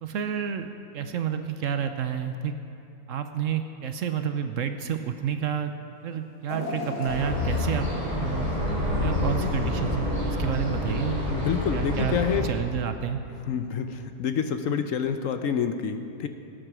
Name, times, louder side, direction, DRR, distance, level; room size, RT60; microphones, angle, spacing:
voice 1, 0.0-0.7 0.9-2.5 3.1-5.7 6.0-7.9 8.2-8.5 9.0-11.2 11.7-13.2, right 8 dB, 65° right, 8 dB, 0.9 m, -30 dB
sound 1, 6.5-9.6 10.1-10.2 11.2-11.3, left 2 dB, 90° left, 2.4 m, -37 dB
sound 2, 7.1-12.4, left 1 dB, 20° right, 4.0 m, -28 dB
voice 2, 11.3-12.5 13.5-16.3, left 7 dB, 65° left, 8 dB, 0.9 m, -28 dB
17.5 x 8.9 x 6.1 m, 2.9 s
omnidirectional pair, 1.7 m